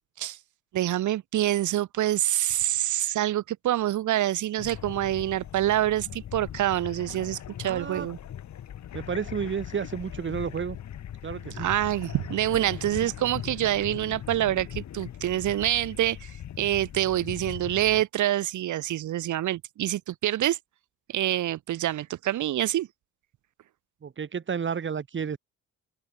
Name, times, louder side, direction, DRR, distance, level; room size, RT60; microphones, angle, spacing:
voice 1, 0.7-8.2 11.6-20.6 21.1-22.9, right 13 dB, 75° right, 1.8 m, -26 dB
sound 1, 4.6-18.0, left 10 dB, 65° left, 6.8 m, -40 dB
voice 2, 7.6-8.1 8.9-10.8 11.2-11.7 24.0-25.4, right 6 dB, 40° right, 2.4 m, -31 dB
open air
cardioid pair, 90°, 30 cm